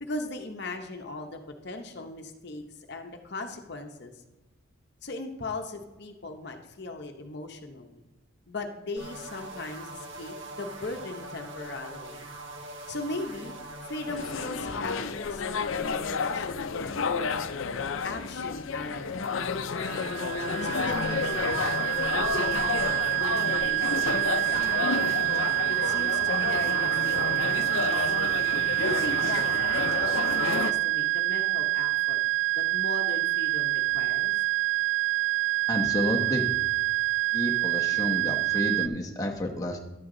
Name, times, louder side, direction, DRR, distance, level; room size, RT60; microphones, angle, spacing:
voice 1, 0.0-4.1 5.0-8.0 8.5-12.2 12.9-13.6 13.8-17.1 18.0-20.1 20.6-22.9 23.2-25.2 25.7-27.9 28.8-32.2 32.6-34.4, left 2 dB, 55° left, 4 dB, 0.9 m, -38 dB
sound 1, 9.0-14.5, right 1 dB, 65° right, 1.3 m, -42 dB
sound 2, 14.1-30.7, left 5 dB, 75° left, 0.6 m, -31 dB
sound 3, 19.8-38.9, right 23 dB, 40° right, 0.3 m, -27 dB
voice 2, 35.7-36.6 37.3-39.8, left 1 dB, 15° left, -1 dB, 0.9 m, -30 dB
11.5 x 7.8 x 3.8 m, 1.1 s
head